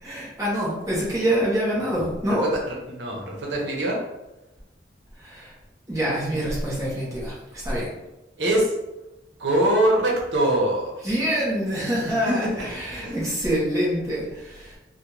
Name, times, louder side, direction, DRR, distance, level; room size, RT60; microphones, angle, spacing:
voice 1, 0.0-2.4 5.2-5.5 5.9-7.9 11.0-14.8, equal, 15° right, -6 dB, 1.1 m, -26 dB
voice 2, 2.3-4.0 8.4-8.7 9.4-10.9 12.0-13.4, right 1 dB, 85° right, -2 dB, 0.9 m, -24 dB
3.6 x 2.3 x 3.0 m, 0.96 s
head